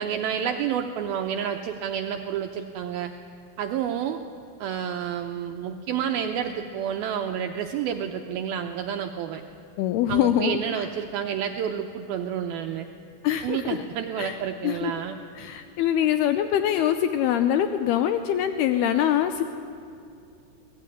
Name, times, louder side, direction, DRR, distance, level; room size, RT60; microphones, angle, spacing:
voice 1, 0.0-3.1 3.6-4.2 4.6-9.4 10.1-12.9 13.4-15.2, right 8 dB, 85° right, 5 dB, 2.1 m, -29 dB
voice 2, 9.8-10.8 13.2-13.8 14.2-14.4 14.6-14.9 15.4-19.4, left 10 dB, 85° left, 9 dB, 2.3 m, -24 dB
23.5 x 18.0 x 9.9 m, 2.5 s
omnidirectional pair, 5.4 m